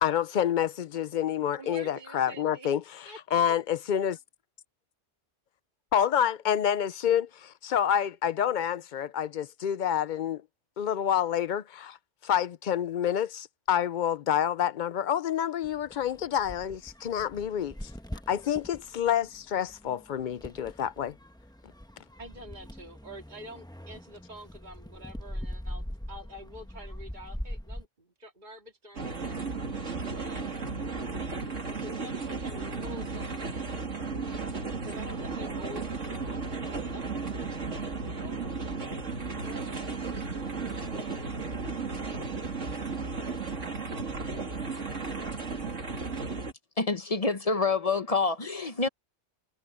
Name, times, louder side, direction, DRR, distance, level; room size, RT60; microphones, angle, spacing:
voice 1, 0.0-2.8 3.3-4.2 5.9-10.4 10.8-12.0 12.2-17.7 18.3-21.1, left 9 dB, 55° left, 0.6 m, -28 dB
voice 2, 1.5-2.7 3.0-3.5 22.2-30.9 31.7-33.8 34.3-37.9 38.2-38.5 39.4-40.6 40.9-41.8, equal, 40° right, 2.6 m, -48 dB
sound 1, 15.6-27.8, equal, 5° left, 1.0 m, -42 dB
sound 2, 29.0-46.5, right 4 dB, 85° right, 2.9 m, -34 dB
voice 3, 46.8-48.9, left 4 dB, 30° left, 1.0 m, -27 dB
omnidirectional pair, 1.2 m